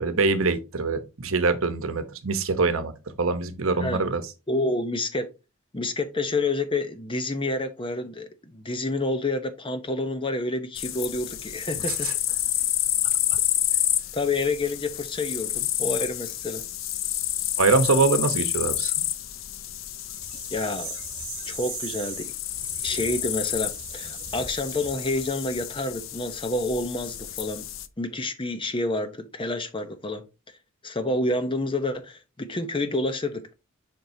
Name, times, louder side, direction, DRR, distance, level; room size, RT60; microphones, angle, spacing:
voice 1, 0.0-4.2 12.0-12.1 17.6-19.0, right 3 dB, 75° right, 0.9 m, -24 dB
voice 2, 4.5-5.3 5.7-12.1 14.1-16.6 20.5-20.9 21.5-22.3 22.8-27.7 28.0-30.2 30.8-33.4, left 2 dB, 25° left, 0.7 m, -28 dB
sound 1, 10.7-27.9, left 13 dB, 65° left, 0.5 m, -29 dB
sound 2, 20.0-25.8, right 6 dB, 35° right, 2.4 m, -40 dB
7.4 x 5.3 x 2.7 m
head